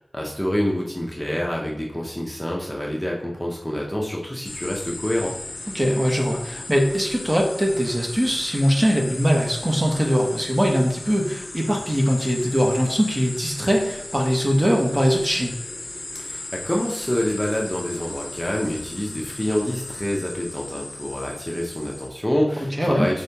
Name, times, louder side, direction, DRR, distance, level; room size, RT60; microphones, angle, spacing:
voice 1, 0.1-5.4 16.1-23.2, equal, 15° left, -2 dB, 0.8 m, -27 dB
sound 1, 4.4-22.1, left 2 dB, 60° left, 0.6 m, -37 dB
voice 2, 5.7-15.5 22.8-23.1, equal, 20° right, 0 dB, 1.0 m, -21 dB
4.4 x 3.2 x 2.8 m, 0.88 s
wide cardioid pair, 45°, 0 cm